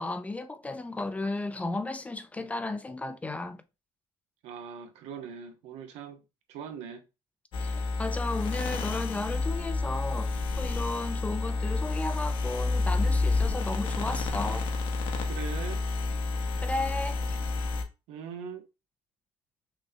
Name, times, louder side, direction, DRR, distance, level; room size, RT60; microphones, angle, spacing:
voice 1, 0.0-3.6 7.6-14.7 16.6-17.2, left 2 dB, 15° left, 0.4 m, -34 dB
voice 2, 4.4-6.2 6.5-7.0 15.3-15.8 18.1-18.6, right 7 dB, 75° right, 0.9 m, -41 dB
sound 1, 7.5-17.8, left 3 dB, 55° left, 0.9 m, -29 dB
6.0 x 2.2 x 2.7 m
cardioid pair, 135°, 11 cm